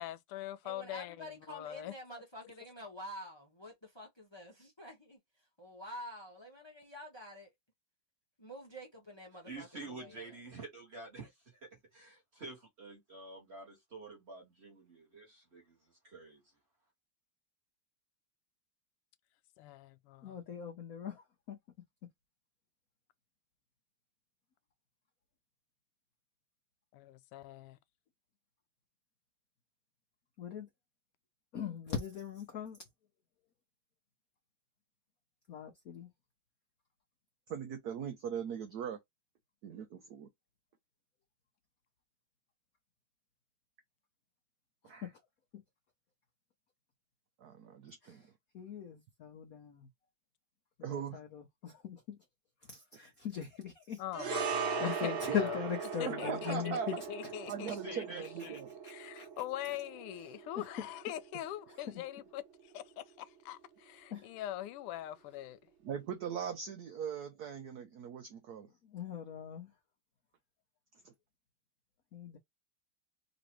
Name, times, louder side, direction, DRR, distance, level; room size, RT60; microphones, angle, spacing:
voice 1, 0.0-1.9 19.6-20.4 26.9-27.8 54.0-55.6 56.0-56.6 57.1-65.6, left 13 dB, 90° left, 1.5 m, -43 dB
voice 2, 0.6-5.2 5.6-7.5 8.4-10.4, equal, 20° left, 0.6 m, -48 dB
voice 3, 9.5-11.3 11.9-15.8 16.0-16.4 57.6-58.6, right 3 dB, 30° right, 1.9 m, -48 dB
voice 4, 20.2-21.6 30.4-30.7 31.5-32.8 35.5-36.1 45.0-45.1 45.5-45.6 48.0-48.2 48.5-49.9 50.8-52.2 52.7-54.0 54.8-56.9 59.2-59.3 64.1-64.2 68.9-69.7 72.1-72.4, left 8 dB, 65° left, 0.9 m, -40 dB
voice 5, 37.5-39.0 39.6-40.3 44.9-45.1 47.4-48.2 50.8-51.2 55.3-55.4 56.1-56.9 57.5-58.7 65.8-68.7 71.0-71.1, right 7 dB, 85° right, 0.8 m, -40 dB
sound 1, 54.1-62.6 62.9-63.1, right 6 dB, 70° right, 1.7 m, -40 dB
4.0 x 3.0 x 3.0 m
omnidirectional pair, 2.4 m